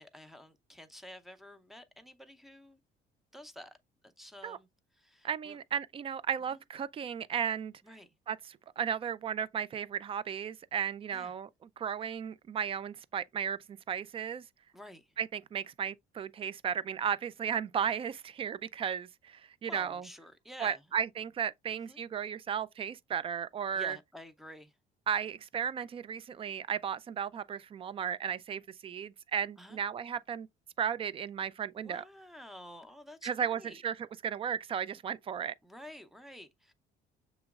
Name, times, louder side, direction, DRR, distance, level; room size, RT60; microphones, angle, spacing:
voice 1, 0.0-2.8 3.3-3.8 4.0-4.7 4.9-5.6 6.5-6.6 7.8-8.1 11.1-11.3 14.7-15.2 19.7-20.8 21.7-22.0 23.7-24.8 29.6-29.8 31.8-33.8 35.6-36.7, left 1 dB, ahead, 0.7 m, -50 dB
voice 2, 5.2-7.7 8.3-11.5 11.8-14.4 15.2-20.0 20.6-24.0 25.1-30.5 30.8-32.0 33.2-34.0 34.2-35.5, right 8 dB, 35° right, 0.3 m, -35 dB
6.8 x 3.0 x 2.4 m
cardioid pair, 110°, 17 cm